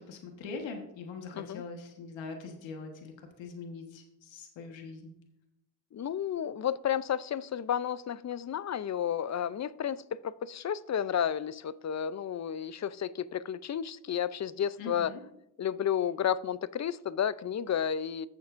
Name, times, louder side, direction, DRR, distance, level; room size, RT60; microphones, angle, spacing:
voice 1, 0.1-5.1 14.8-15.2, left 4 dB, 80° left, 1.4 m, -42 dB
voice 2, 5.9-15.1 15.6-18.3, left 9 dB, 40° left, 0.5 m, -32 dB
14.5 x 7.1 x 2.5 m
supercardioid pair, 50°, 44 cm